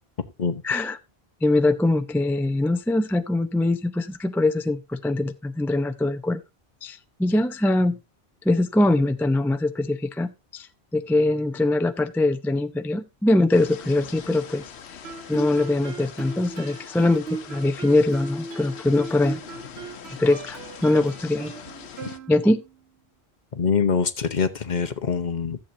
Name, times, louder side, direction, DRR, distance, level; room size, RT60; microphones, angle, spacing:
voice 1, 0.6-1.0 1.4-6.4 6.8-8.0 8.4-10.7 10.9-14.6 15.3-19.4 20.1-21.5 22.3-22.6, left 2 dB, 5° left, 0.4 m, -22 dB
audio samples wide rain, 13.5-22.2, left 7 dB, 90° left, 1.2 m, -43 dB
Guitar, 15.0-22.8, right 4 dB, 85° right, 1.1 m, -38 dB
voice 2, 23.5-25.6, left 6 dB, 50° left, 0.9 m, -24 dB
14.5 x 7.8 x 2.7 m
omnidirectional pair, 1.1 m